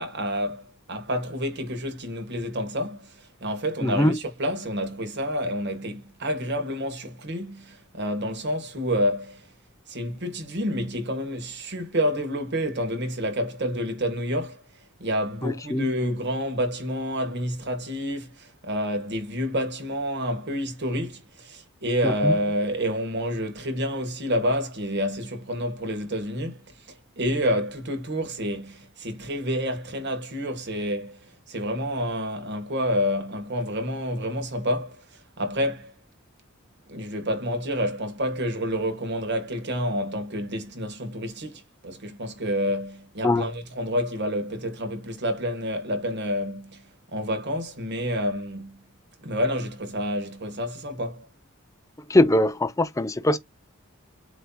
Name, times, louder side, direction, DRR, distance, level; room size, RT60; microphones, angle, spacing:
voice 1, 0.0-9.5 9.9-14.6 15.0-26.6 26.9-31.2 31.5-35.9 36.9-48.8 49.2-51.3, equal, 55° right, 1.4 m, -29 dB
voice 2, 3.8-4.2 15.4-15.9 22.0-22.4 43.2-43.5 52.1-53.4, left 1 dB, 15° left, 0.5 m, -22 dB
7.8 x 2.8 x 2.3 m
head